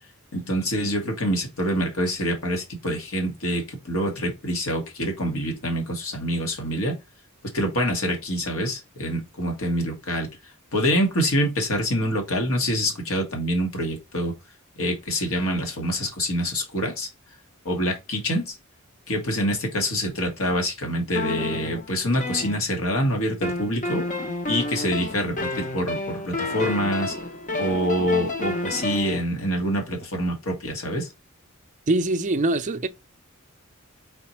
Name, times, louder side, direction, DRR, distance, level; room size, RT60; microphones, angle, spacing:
voice 1, 0.3-7.0 7.5-10.3 10.7-14.3 14.8-17.1 17.6-18.6 19.1-24.1 24.5-27.1 27.6-31.1, equal, 70° left, 1.5 m, -26 dB
sound 1, 21.1-23.0 23.4-29.2, left 2 dB, 35° left, 0.7 m, -30 dB
voice 2, 31.9-32.9, right 2 dB, 35° right, 0.5 m, -23 dB
4.1 x 4.1 x 3.0 m
head